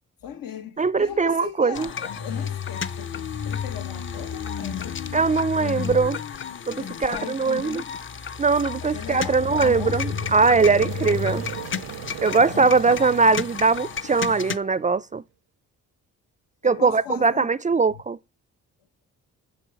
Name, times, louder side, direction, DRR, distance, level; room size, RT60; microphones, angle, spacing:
voice 1, 0.2-5.0 6.8-8.0 8.8-10.1 11.6-11.7 12.5-13.1 16.6-17.5 17.9-18.0, left 8 dB, 80° left, 1.3 m, -38 dB
voice 2, 0.8-1.9 5.1-6.2 6.7-7.8 8.4-11.4 12.2-15.2 16.6-18.2, right 4 dB, 25° right, 0.3 m, -21 dB
sound 1, 1.7-14.6, left 7 dB, 35° left, 0.7 m, -32 dB
sound 2, 9.0-14.9, right 15 dB, 80° right, 0.5 m, -38 dB
7.0 x 4.7 x 6.7 m
cardioid pair, 65°, 33 cm